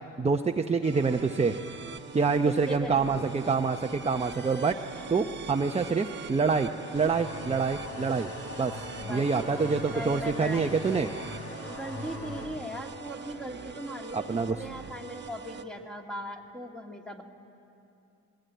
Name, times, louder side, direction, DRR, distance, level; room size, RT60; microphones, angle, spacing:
voice 1, 0.2-1.5 2.1-4.8 5.1-8.3 8.6-11.1 14.1-14.6, right 4 dB, 20° right, 4 dB, 0.8 m, -26 dB
sound 1, 0.8-15.6, right 5 dB, 35° right, 1.2 m, -43 dB
voice 2, 2.4-3.2 9.0-11.2 11.7-17.2, equal, 5° left, 2 dB, 2.2 m, -39 dB
sound 2, 7.0-12.5, left 2 dB, 50° left, 4.1 m, -41 dB
21.5 x 16.5 x 9.3 m, 2.7 s
cardioid pair, 90°, 30 cm